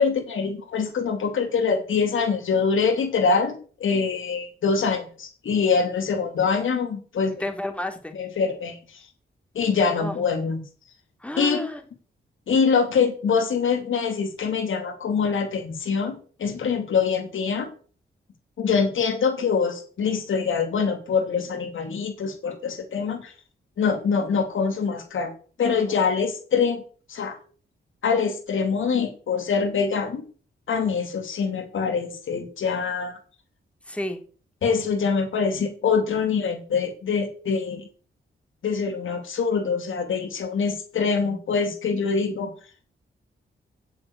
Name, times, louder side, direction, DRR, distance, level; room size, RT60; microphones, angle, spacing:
voice 1, 0.0-3.5 3.8-7.4 8.1-8.8 9.5-10.6 11.4-11.6 12.5-17.7 18.6-23.3 23.8-25.3 25.6-26.8 27.1-27.4 28.0-30.2 30.7-33.2 34.6-37.9 38.6-42.5, left 5 dB, 80° left, 6 dB, 2.8 m, -24 dB
voice 2, 7.4-8.2 9.9-10.2 11.2-11.8 33.9-34.2, left 1 dB, 5° left, 4 dB, 2.8 m, -31 dB
15.5 x 6.0 x 8.2 m, 0.42 s
cardioid pair, 80°, 20 cm